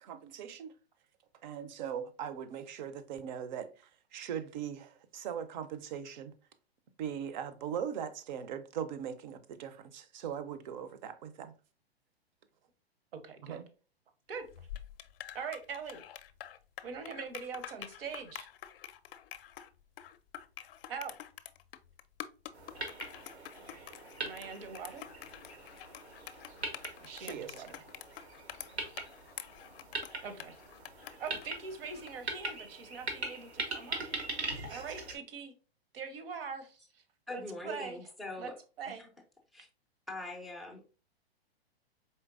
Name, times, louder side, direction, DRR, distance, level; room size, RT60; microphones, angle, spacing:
voice 1, 0.0-0.7 1.4-6.3 7.0-11.5 13.4-13.6 27.2-27.5, right 8 dB, 45° right, 0.6 m, -40 dB
voice 2, 13.2-13.6 14.3-14.5 15.3-16.0 16.8-18.5 20.9-21.1 24.2-25.0 27.0-27.8 30.2-30.5 31.0-34.0 34.7-35.5 35.9-36.8 37.3-38.1 38.4-38.5 38.8-39.0, right 6 dB, 60° right, 0.9 m, -42 dB
sound 1, 14.4-32.2, left 11 dB, 60° left, 0.5 m, -48 dB
sound 2, 22.5-35.2, right 3 dB, 85° right, 1.2 m, -42 dB
voice 3, 37.3-38.6 38.9-39.1 39.5-39.7 40.1-40.9, left 2 dB, ahead, 0.3 m, -42 dB
4.4 x 3.2 x 2.4 m
hypercardioid pair, 120°, 31 cm